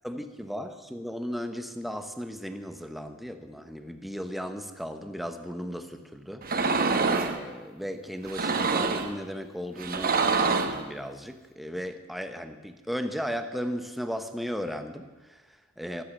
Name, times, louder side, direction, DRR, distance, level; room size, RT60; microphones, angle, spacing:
voice 1, 0.0-16.0, equal, ahead, 7 dB, 1.0 m, -36 dB
sound 1, 6.4-7.4 8.2-9.1 9.8-10.8, right 4 dB, 45° right, 1.1 m, -25 dB
13.5 x 13.5 x 7.0 m, 1.2 s
head